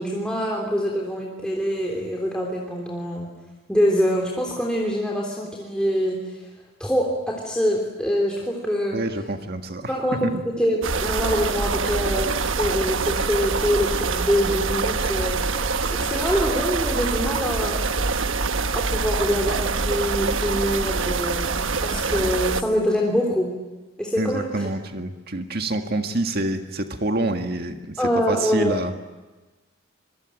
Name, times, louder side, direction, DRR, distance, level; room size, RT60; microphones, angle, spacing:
voice 1, 0.0-3.3 3.7-6.4 6.8-9.0 9.9-17.8 18.7-23.5 24.0-24.6 28.0-28.7, equal, 5° left, -2 dB, 3.5 m, -25 dB
voice 2, 8.9-9.9 10.2-10.4 24.2-29.0, right 2 dB, 55° right, 5 dB, 1.9 m, -27 dB
sound 1, 10.8-22.6, right 4 dB, 80° right, 1.2 m, -25 dB
26.5 x 23.0 x 9.2 m, 1.2 s
head